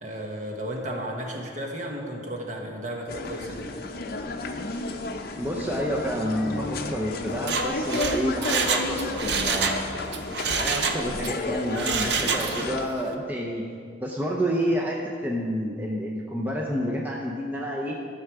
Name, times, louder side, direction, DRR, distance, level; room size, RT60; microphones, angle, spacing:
voice 1, 0.0-3.9, equal, 40° right, 1 dB, 1.4 m, -34 dB
sound 1, 3.1-12.9, left 2 dB, 55° left, 0.7 m, -32 dB
voice 2, 5.4-9.8 10.6-13.6 14.0-18.0, equal, 10° right, -2 dB, 0.7 m, -29 dB
Mechanisms, 7.3-9.8 10.1-11.3 11.7-12.8 13.1-13.2, right 5 dB, 65° right, 0.7 m, -27 dB
13.5 x 6.7 x 4.8 m, 2.2 s
head